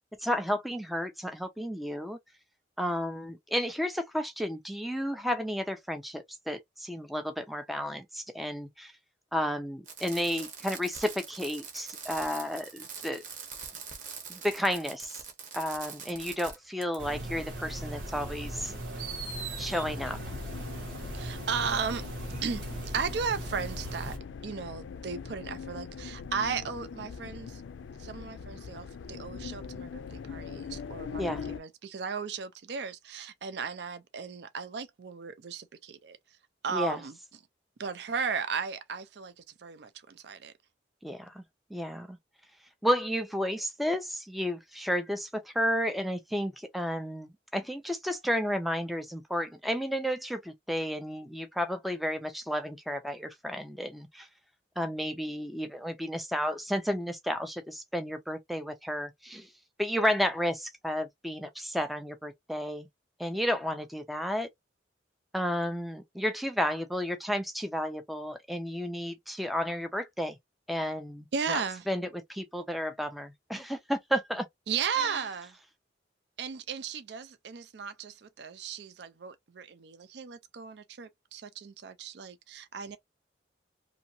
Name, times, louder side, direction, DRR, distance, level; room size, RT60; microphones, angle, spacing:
voice 1, 0.2-2.2 2.8-8.9 9.3-13.2 14.3-15.2 15.5-18.7 19.6-20.2 31.2-31.5 36.7-37.0 41.0-41.4 41.7-42.2 42.8-54.3 54.8-59.5 59.8-62.9 63.2-64.5 65.3-70.4 70.7-71.6 71.9-74.5, equal, ahead, 0.3 m, -32 dB
Fireworks, 9.9-16.6 16.8-17.0 18.1-18.2 19.0-19.8 21.5-21.6, right 6 dB, 45° right, 0.9 m, -43 dB
sound 1, 17.0-24.2, right 1 dB, 85° right, 1.2 m, -39 dB
sound 2, 19.8-31.6, left 6 dB, 85° left, 0.4 m, -42 dB
voice 2, 21.1-22.1 22.4-24.1 24.4-27.6 28.0-36.2 36.6-37.1 37.8-40.5 71.3-71.9 74.7-75.6 76.4-83.0, right 6 dB, 65° right, 0.4 m, -35 dB
2.8 x 2.6 x 2.6 m
head